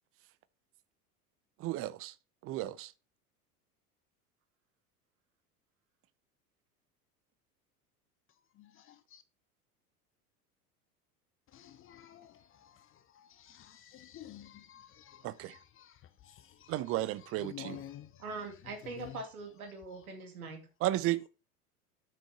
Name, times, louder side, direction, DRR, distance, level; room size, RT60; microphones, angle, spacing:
voice 1, 1.6-2.1 2.4-2.9 15.2-15.6 16.7-17.8 20.8-21.3, right 15 dB, 30° right, 0.6 m, -33 dB
voice 2, 8.6-9.2 11.5-19.3 20.0-20.1, left 11 dB, 30° left, 0.8 m, -51 dB
voice 3, 18.2-20.7, right 3 dB, 70° right, 2.4 m, -42 dB
8.4 x 6.4 x 4.4 m
figure-of-eight pair, 75°, 45 cm